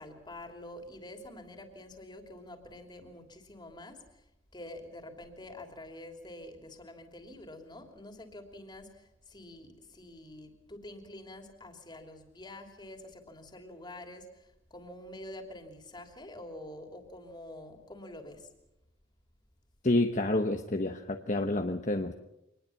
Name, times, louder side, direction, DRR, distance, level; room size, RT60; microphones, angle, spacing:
voice 1, 0.0-4.0 4.5-14.4 14.7-18.5, left 1 dB, 20° left, 5 dB, 3.1 m, -47 dB
voice 2, 19.8-22.1, left 2 dB, 40° left, 6 dB, 1.0 m, -28 dB
25.0 x 20.0 x 7.2 m, 0.87 s
head